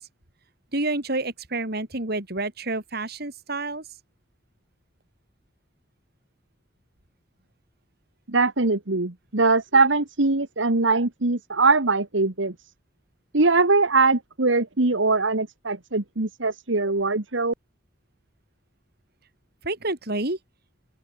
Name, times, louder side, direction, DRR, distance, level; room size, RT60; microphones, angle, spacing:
voice 1, 0.7-3.8 19.6-20.4, right 2 dB, 55° right, 4.1 m, -29 dB
voice 2, 8.3-12.5 13.3-17.5, right 3 dB, 80° right, 1.8 m, -22 dB
open air
head